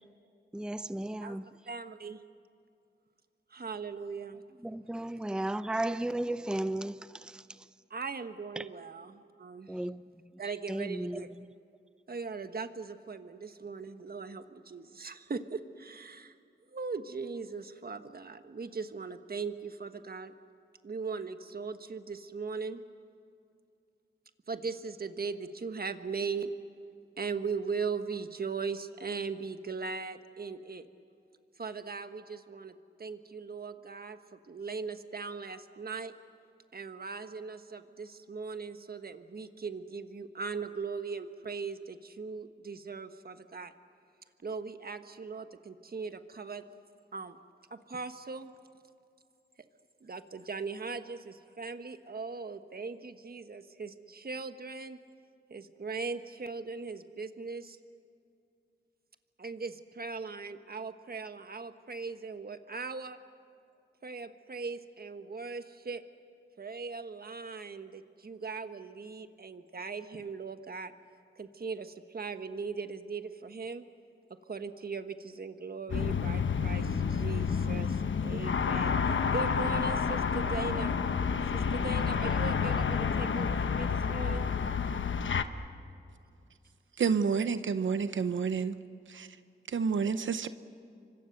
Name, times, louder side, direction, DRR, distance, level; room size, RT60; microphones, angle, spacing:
voice 1, 0.5-1.5 4.6-7.4 8.6-8.7 9.7-10.0 10.7-11.4, right 1 dB, 5° right, 0.6 m, -34 dB
voice 2, 1.7-2.2 3.5-4.4 7.9-9.7 10.4-11.3 12.1-16.3 16.7-20.3 20.8-22.8 24.5-26.5 27.2-30.9 31.6-32.7 33.0-36.1 36.7-43.7 44.4-46.6 47.1-47.4 47.7-48.5 50.0-55.0 55.5-57.8 59.4-63.2 64.0-66.0 66.6-70.9 71.4-73.9 74.5-80.9 81.5-84.5, right 4 dB, 50° right, 1.4 m, -39 dB
sound 1, 75.9-85.4, left 6 dB, 85° left, 1.0 m, -29 dB
voice 3, 87.0-88.8 89.1-89.3 89.7-90.5, right 6 dB, 85° right, 0.8 m, -29 dB
29.0 x 25.0 x 6.7 m
wide cardioid pair, 75°, 19 cm